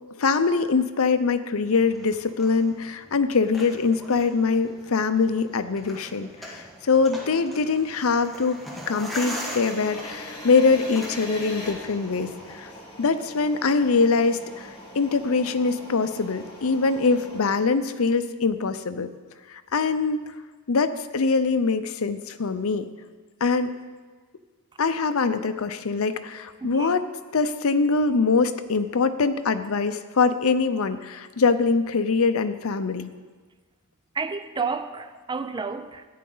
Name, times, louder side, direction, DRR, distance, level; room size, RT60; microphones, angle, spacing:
voice 1, 0.2-8.6 8.9-12.7 13.0-14.7 14.9-19.1 19.5-20.2 20.7-22.9 23.4-23.7 24.8-27.1 27.3-33.1, left 4 dB, 70° left, 0.6 m, -23 dB
sound 1, 1.7-12.6, equal, ahead, 1.4 m, -41 dB
sound 2, 9.2-17.6, left 1 dB, 25° left, 2.2 m, -41 dB
voice 2, 26.6-26.9 34.1-36.1, right 4 dB, 20° right, 0.4 m, -31 dB
14.0 x 9.4 x 3.9 m
head